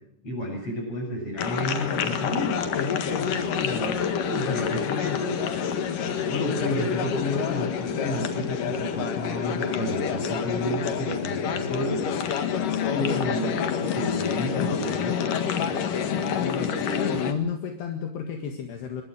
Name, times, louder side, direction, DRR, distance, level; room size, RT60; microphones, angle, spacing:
voice 1, 0.2-4.0 4.3-5.4 6.3-12.1 12.9-15.2, left 1 dB, 35° left, 2 dB, 8.7 m, -31 dB
sound 1, 1.4-17.3, left 7 dB, 55° left, 3.1 m, -27 dB
voice 2, 16.4-19.0, left 7 dB, 75° left, 4 dB, 3.9 m, -31 dB
24.5 x 21.5 x 6.3 m, 0.74 s
omnidirectional pair, 4.9 m